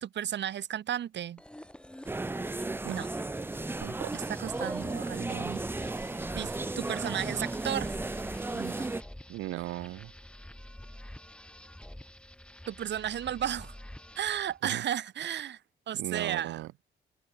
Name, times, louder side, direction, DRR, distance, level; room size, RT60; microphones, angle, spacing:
voice 1, 0.0-1.4 2.9-3.1 4.1-5.9 6.3-8.0 8.5-8.9 12.7-13.7 14.2-15.6 15.9-16.6, right 10 dB, 60° right, 1.7 m, -34 dB
sound 1, 1.4-14.6, left 1 dB, 5° left, 5.3 m, -48 dB
sound 2, 2.1-9.0, right 2 dB, 10° right, 0.5 m, -35 dB
voice 2, 3.8-4.1 9.3-10.1 14.6-14.8 15.9-16.7, right 17 dB, 90° right, 1.2 m, -37 dB
cardioid pair, 90°, 20 cm